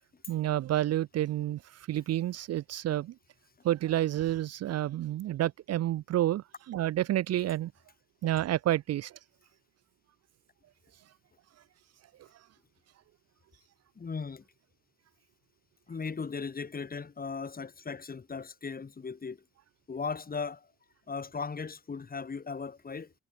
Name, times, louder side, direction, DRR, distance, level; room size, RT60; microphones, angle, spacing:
voice 1, 0.3-1.6 1.9-3.1 3.6-7.7 8.2-9.1, right 13 dB, 55° right, 0.5 m, -29 dB
voice 2, 14.0-14.4 15.9-19.4 19.9-20.7 21.1-23.1, left 5 dB, 30° left, 1.8 m, -37 dB
cardioid pair, 90°, 30 cm